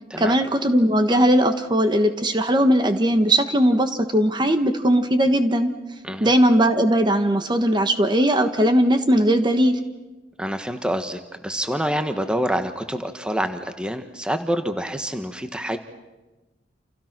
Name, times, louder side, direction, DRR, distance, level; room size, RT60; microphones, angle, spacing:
voice 1, 0.2-5.7 6.2-9.8, equal, 25° right, 7 dB, 1.4 m, -19 dB
voice 2, 10.4-15.8, equal, 5° right, 7 dB, 1.4 m, -27 dB
29.5 x 28.5 x 6.1 m, 1.1 s
head